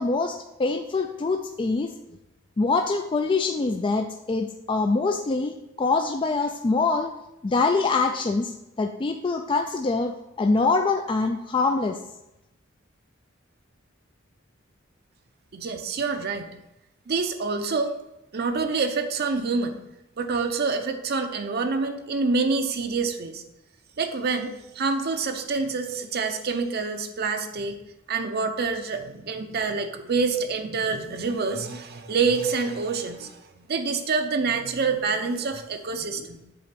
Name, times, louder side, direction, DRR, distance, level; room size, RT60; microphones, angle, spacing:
voice 1, 0.0-1.9 2.6-7.1 7.4-10.1 10.4-12.0, left 3 dB, 25° left, 5 dB, 0.3 m, -24 dB
voice 2, 15.5-16.5 17.1-17.9 18.3-19.8 20.2-23.4 24.0-27.8 28.1-33.4 33.7-36.4, right 4 dB, 55° right, 6 dB, 0.6 m, -27 dB
7.6 x 4.0 x 5.8 m, 0.91 s
head